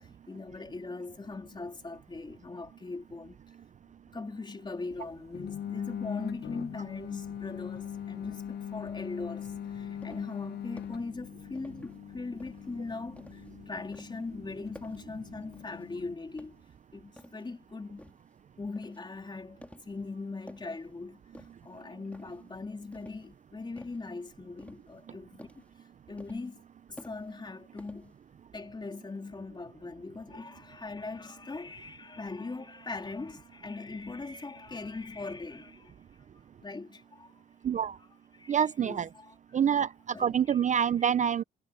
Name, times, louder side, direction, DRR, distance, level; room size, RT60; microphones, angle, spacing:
voice 1, 0.0-3.4 4.1-16.6 16.9-18.1 18.6-21.2 21.6-25.6 26.1-26.6 26.9-28.1 28.5-35.9 36.6-37.3 38.3-39.6 40.1-40.6 41.0-41.1, left 3 dB, 20° left, 3.4 m, -40 dB
sound 1, 5.3-16.1, left 9 dB, 55° left, 0.7 m, -41 dB
sound 2, 9.6-10.4 10.8-11.1 11.5-12.0 12.4-13.5 13.9-14.3 14.7-15.1 15.5-15.9 16.3-17.5 18.0-18.3 18.8-19.1 19.6-20.0 20.3-20.9 21.3-21.8 22.1-22.5 22.9-23.3 23.8-24.1 24.6-25.1 25.4-25.7 26.2-26.7 27.0-27.5 27.8-28.4, left 1 dB, 5° left, 3.7 m, -52 dB
voice 2, 37.6-38.0 38.5-39.1 39.5-39.9 40.2-41.4, right 8 dB, 40° right, 0.4 m, -26 dB
cardioid pair, 90°, 20 cm